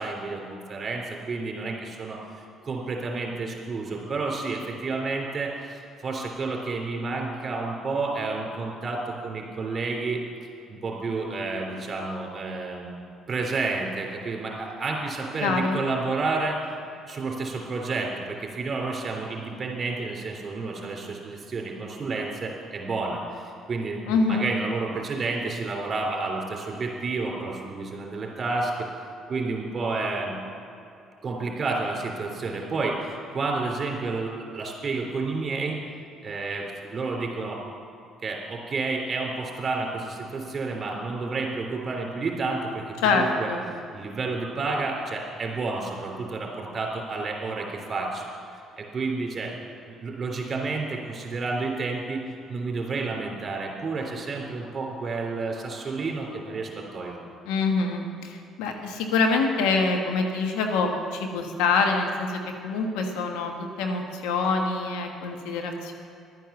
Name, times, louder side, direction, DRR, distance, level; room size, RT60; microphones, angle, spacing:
voice 1, 0.0-2.2 2.6-10.2 10.7-16.6 17.1-28.9 29.3-30.4 31.2-35.8 36.2-37.6 38.2-43.5 43.9-48.3 48.8-49.5 49.9-52.2 52.5-57.2, right 3 dB, 40° right, 0 dB, 3.5 m, -30 dB
voice 2, 15.4-15.8 24.1-24.4 43.0-43.6 57.4-63.5 63.8-65.9, left 4 dB, 80° left, 3 dB, 1.4 m, -25 dB
12.0 x 9.2 x 7.0 m, 2.6 s
supercardioid pair, 65°, 0 cm